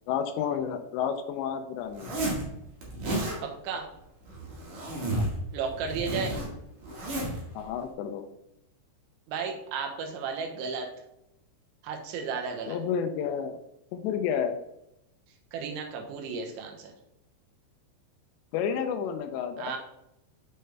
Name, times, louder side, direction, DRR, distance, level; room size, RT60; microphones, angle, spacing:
voice 1, 0.1-2.1 5.1-5.3 7.6-8.3 12.7-13.6 13.9-14.6 18.5-19.8, left 7 dB, 80° left, 8 dB, 2.7 m, -30 dB
Zipper (clothing), 1.9-2.4 2.8-3.4 4.2-5.4 5.7-7.4, right 1 dB, 50° right, 2.6 m, -32 dB
voice 2, 3.4-3.9 5.5-6.4 9.3-10.9 11.8-12.8 15.5-16.9 19.6-19.8, right 5 dB, 90° right, 2 dB, 3.4 m, -33 dB
6.7 x 6.5 x 3.3 m, 0.85 s
omnidirectional pair, 5.2 m